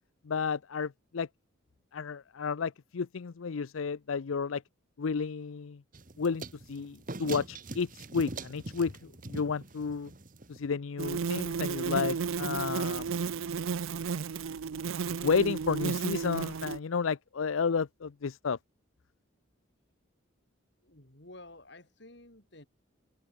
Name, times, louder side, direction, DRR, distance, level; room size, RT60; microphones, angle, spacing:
voice 1, 0.3-1.3 1.9-4.6 5.0-5.8 6.2-10.1 10.5-13.1 15.2-18.6, left 5 dB, 80° left, 0.5 m, -32 dB
sound 1, 5.9-10.7, right 2 dB, 40° right, 1.4 m, -43 dB
sound 2, 11.0-16.8, right 6 dB, 85° right, 0.5 m, -33 dB
voice 2, 20.8-22.7, left 2 dB, 55° left, 3.9 m, -52 dB
head